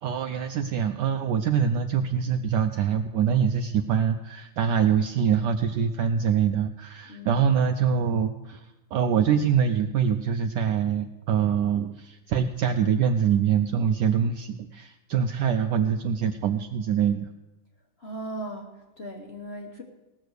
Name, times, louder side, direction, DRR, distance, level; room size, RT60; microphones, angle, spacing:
voice 1, 0.0-17.3, right 7 dB, 75° right, 7 dB, 1.0 m, -24 dB
voice 2, 7.1-7.4 18.0-19.8, right 1 dB, 40° left, 1 dB, 1.0 m, -38 dB
18.0 x 6.7 x 6.3 m, 1.0 s
omnidirectional pair, 2.3 m